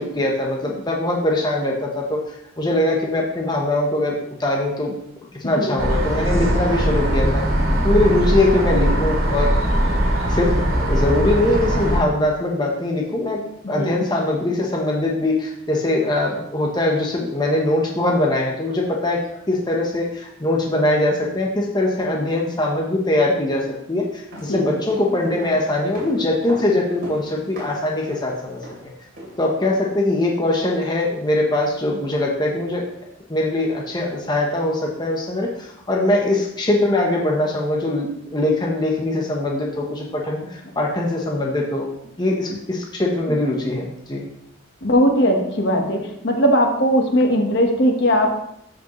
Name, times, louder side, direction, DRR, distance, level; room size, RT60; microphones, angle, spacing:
voice 1, 0.0-2.2 2.6-4.9 5.4-7.4 7.8-9.5 9.8-13.4 13.7-19.2 19.5-28.6 29.4-32.9 33.3-41.9 42.2-44.2, left 1 dB, 20° left, -1 dB, 0.9 m, -22 dB
sound 1, 5.8-12.0, equal, 85° right, 2.4 m, -20 dB
voice 2, 13.6-14.0 24.5-24.7 42.5-42.6 44.8-48.4, equal, 55° left, 3 dB, 1.2 m, -19 dB
sound 2, 24.1-30.1 30.4-30.5, equal, 50° right, 3.3 m, -40 dB
13.0 x 5.1 x 3.0 m, 0.77 s
head